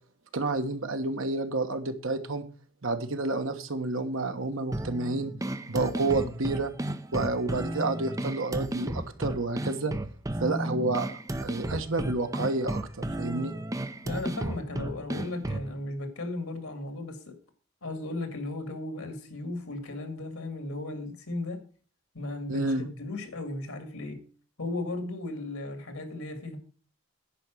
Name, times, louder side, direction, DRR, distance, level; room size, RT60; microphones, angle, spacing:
voice 1, 0.3-2.4 2.8-5.3 5.7-6.7 7.1-9.9 10.4-12.8 13.2-13.5 22.5-22.9, right 2 dB, 65° right, 1.3 m, -29 dB
sound 1, 4.7-15.7, right 1 dB, 15° right, 0.5 m, -33 dB
voice 2, 14.0-17.3 17.8-21.6 22.1-24.2 24.6-26.6, left 2 dB, 90° left, 2.3 m, -35 dB
10.5 x 5.0 x 7.6 m
head